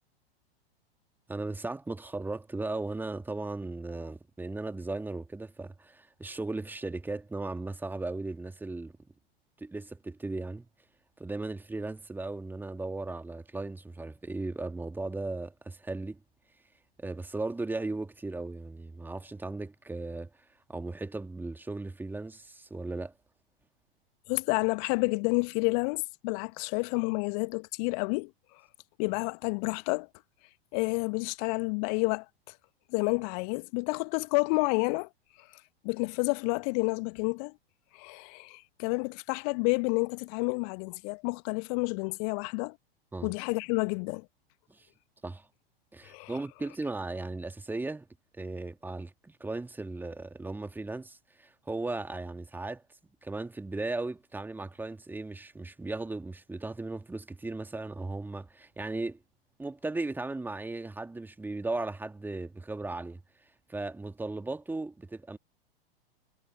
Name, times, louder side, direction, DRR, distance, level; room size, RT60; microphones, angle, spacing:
voice 1, 1.3-8.9 9.6-10.7 11.2-16.2 17.0-20.3 20.7-23.1 43.1-43.3 44.7-44.9 45.2-45.5 45.9-48.1 48.4-52.8 53.2-59.2 59.6-63.2 63.7-65.4, right 2 dB, 5° right, 2.1 m, -36 dB
voice 2, 24.3-28.3 29.0-30.1 30.7-32.5 32.9-35.1 35.4-35.5 35.8-37.5 37.9-42.7 43.2-44.2 46.1-46.3, left 37 dB, 40° left, 1.4 m, -30 dB
figure-of-eight pair, 100°, 30 cm